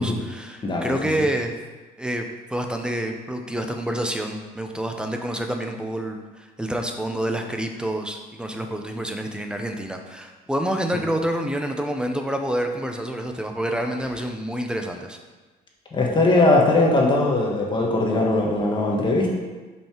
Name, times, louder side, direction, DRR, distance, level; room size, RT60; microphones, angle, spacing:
voice 1, 0.0-1.6 2.0-15.2, right 1 dB, 5° right, 4 dB, 0.7 m, -28 dB
voice 2, 0.6-1.0 15.9-19.3, left 2 dB, 30° left, -1 dB, 1.5 m, -20 dB
5.6 x 5.3 x 4.5 m, 1.3 s
cardioid pair, 110°, 17 cm